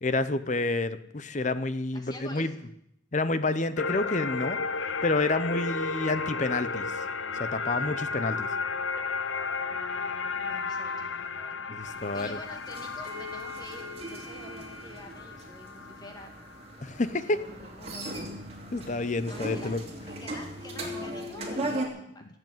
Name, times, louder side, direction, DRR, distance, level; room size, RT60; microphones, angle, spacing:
voice 1, 0.0-2.5 3.1-4.6 5.0-7.0 7.4-8.5 11.7-12.4 16.8-17.4 18.7-19.8, left 2 dB, 40° left, 13 dB, 0.7 m, -29 dB
voice 2, 1.9-2.5 9.7-16.4 17.3-18.1 19.3-19.7 20.0-22.2, left 1 dB, 20° left, 3 dB, 2.4 m, -47 dB
sound 1, 3.8-16.4, left 4 dB, 85° left, 0.9 m, -33 dB
sound 2, 11.8-21.9, right 1 dB, 30° right, 3.1 m, -38 dB
17.0 x 8.1 x 9.2 m, 0.76 s
head